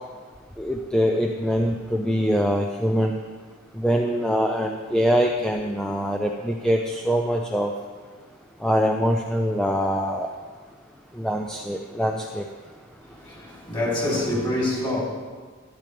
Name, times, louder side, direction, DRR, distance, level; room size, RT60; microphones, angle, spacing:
voice 1, 0.6-3.2 3.7-7.7 8.6-10.3 11.1-12.5, equal, 5° left, 0.5 m, -23 dB
voice 2, 13.2-15.0, left 1 dB, 25° left, 3.4 m, -26 dB
12.5 x 11.5 x 3.4 m
head